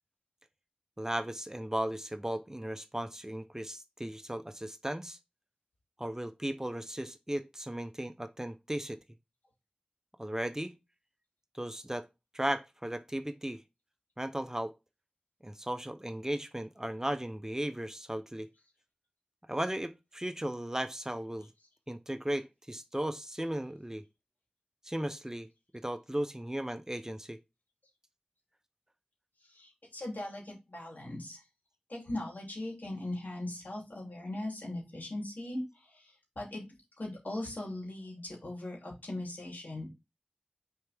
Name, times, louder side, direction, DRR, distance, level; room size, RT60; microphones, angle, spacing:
voice 1, 1.0-5.2 6.0-9.0 10.2-10.8 11.5-12.1 12.3-13.6 14.2-14.7 15.4-18.5 19.5-21.5 21.9-24.0 24.8-25.5 25.7-27.4, right 1 dB, 15° right, 0.7 m, -36 dB
voice 2, 29.5-31.4 31.9-35.6 35.9-36.7 37.0-39.9, left 1 dB, 75° left, 3.0 m, -39 dB
6.3 x 4.4 x 3.5 m
wide cardioid pair, 50°, 3 cm